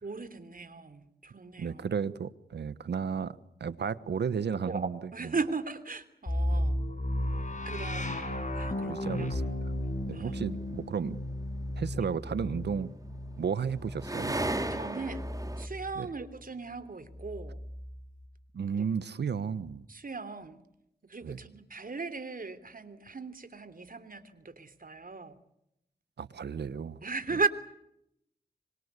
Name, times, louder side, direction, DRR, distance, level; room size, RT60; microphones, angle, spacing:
voice 1, 0.0-1.9 4.7-6.8 7.6-9.3 10.1-10.4 11.9-12.1 14.7-15.3 15.6-17.6 18.7-18.8 19.9-20.6 21.0-25.3 27.0-27.5, right 4 dB, 55° right, 3.2 m, -37 dB
voice 2, 1.6-5.3 6.5-6.7 8.8-9.4 10.1-11.2 11.7-12.9 13.4-14.5 15.9-16.1 18.5-19.9 21.2-21.4 26.2-27.0, right 6 dB, 90° right, 1.1 m, -33 dB
sound 1, 6.3-16.1 17.1-18.1, left 1 dB, 45° left, 7.3 m, -35 dB
sound 2, 7.5-7.6 12.7-15.7, right 1 dB, 20° right, 3.0 m, -34 dB
26.0 x 24.0 x 8.2 m
cardioid pair, 45°, 17 cm